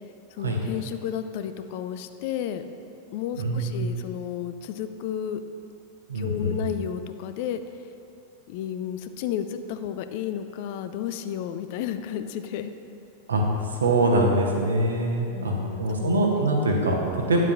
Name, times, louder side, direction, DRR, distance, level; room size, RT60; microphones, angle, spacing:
voice 1, 0.3-2.7 3.1-5.4 6.1-7.6 8.5-12.7 15.3-16.2, left 9 dB, 50° left, 10 dB, 0.4 m, -32 dB
voice 2, 3.4-3.9 6.1-6.7 13.3-17.4, right 1 dB, 70° right, 0 dB, 1.0 m, -24 dB
9.7 x 7.3 x 2.6 m, 2.7 s
figure-of-eight pair, 90°, 0 cm